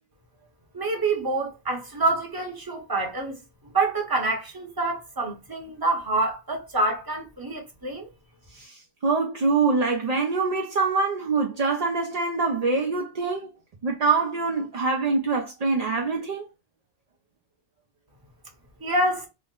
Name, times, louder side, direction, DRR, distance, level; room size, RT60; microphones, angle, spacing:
voice 1, 0.7-3.4 3.7-8.1 18.8-19.3, right 2 dB, 20° right, 0.7 m, -26 dB
voice 2, 8.5-13.5 13.8-16.5, right 4 dB, 55° right, 0.4 m, -24 dB
3.4 x 2.0 x 3.6 m
omnidirectional pair, 1.3 m